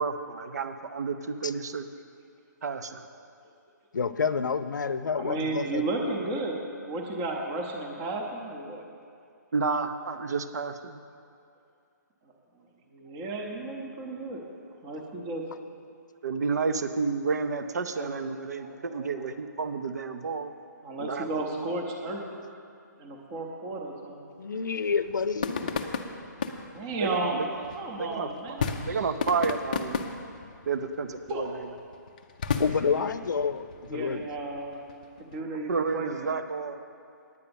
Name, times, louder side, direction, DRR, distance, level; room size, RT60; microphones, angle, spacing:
voice 1, 0.0-1.8 2.6-3.1 9.5-11.0 16.2-20.5 21.0-21.3 27.0-27.7 28.0-30.1 30.7-31.7 35.7-36.8, right 5 dB, 60° right, 9 dB, 0.6 m, -31 dB
voice 2, 3.9-5.8 24.4-25.7 32.6-34.2, left 6 dB, 75° left, 13 dB, 0.6 m, -28 dB
voice 3, 5.1-8.8 12.9-14.5 14.8-15.6 17.9-18.1 18.6-19.2 20.8-22.2 23.0-24.3 26.7-29.4 31.3-31.4 32.7-33.1 33.9-34.8 35.2-36.4, right 2 dB, 15° right, 1 dB, 0.7 m, -34 dB
sound 1, 25.0-35.4, left 5 dB, 25° left, 0.5 m, -35 dB
9.7 x 9.1 x 6.9 m, 2.4 s
hypercardioid pair, 175°, 10 cm